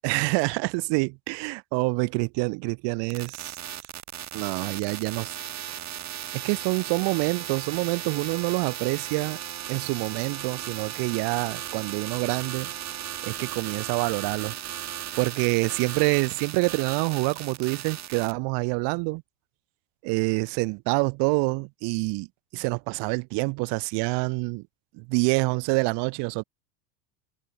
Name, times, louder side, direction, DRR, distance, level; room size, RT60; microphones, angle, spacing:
voice 1, 0.0-3.6 4.3-5.3 6.3-9.4 9.7-12.7 13.2-14.5 15.2-19.2 20.0-22.3 22.5-24.6 25.0-26.4, right 30 dB, 55° right, 4.3 m, -26 dB
sound 1, 3.1-18.3, right 11 dB, 35° right, 7.4 m, -36 dB
supercardioid pair, 140°, 49 cm